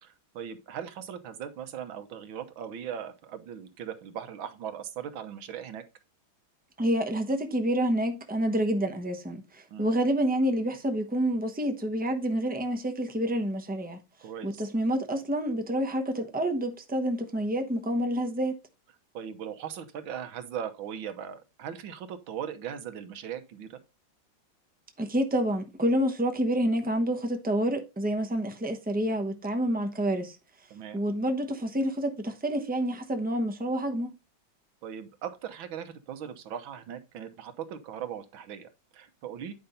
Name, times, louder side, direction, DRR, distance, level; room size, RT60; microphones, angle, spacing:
voice 1, 0.0-5.8 9.7-9.9 14.2-14.6 19.1-23.8 30.7-31.0 34.8-39.5, right 9 dB, 80° right, 1.8 m, -39 dB
voice 2, 6.8-14.0 14.4-18.6 25.0-30.4 30.9-34.1, right 1 dB, 10° right, 0.4 m, -28 dB
9.2 x 5.2 x 4.2 m
omnidirectional pair, 2.2 m